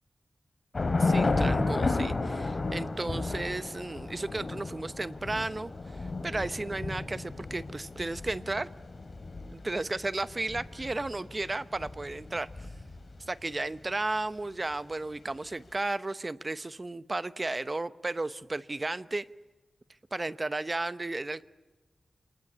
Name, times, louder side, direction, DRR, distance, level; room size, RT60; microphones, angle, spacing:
Thunder / Rain, 0.7-13.3, left 3 dB, 45° left, 2.9 m, -32 dB
voice 1, 1.0-8.7 9.5-12.7 13.3-19.3 20.1-21.4, right 2 dB, 35° right, 15 dB, 0.9 m, -34 dB
27.5 x 19.5 x 9.8 m, 1.2 s
wide cardioid pair, 80°, 0 cm